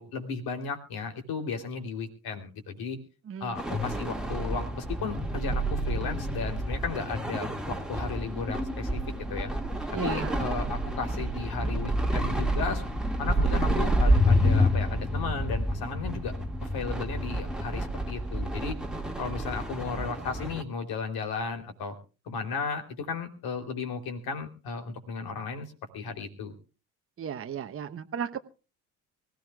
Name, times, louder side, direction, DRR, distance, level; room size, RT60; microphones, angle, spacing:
voice 1, 0.0-3.0 3.4-9.0 9.3-9.5 10.0-12.9 13.2-16.3 16.6-18.8 19.2-22.0 22.2-25.7 25.9-26.5, left 5 dB, 55° left, 6 dB, 3.5 m, -35 dB
voice 2, 3.3-3.7 9.9-10.4 27.2-28.4, right 8 dB, 30° right, 7 dB, 1.1 m, -35 dB
sound 1, 3.6-20.6, equal, ahead, 2.1 m, -28 dB
24.5 x 15.5 x 2.4 m, 0.34 s
figure-of-eight pair, 50°, 45 cm